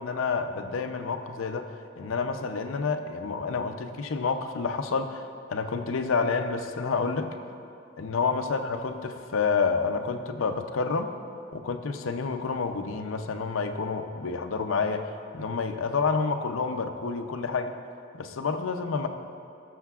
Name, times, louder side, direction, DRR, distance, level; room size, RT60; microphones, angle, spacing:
voice 1, 0.0-5.2 5.5-7.3 8.0-11.1 11.5-15.0 15.3-17.7 18.2-19.1, left 4 dB, 90° left, 6 dB, 0.6 m, -29 dB
18.0 x 6.4 x 2.4 m, 2.7 s
head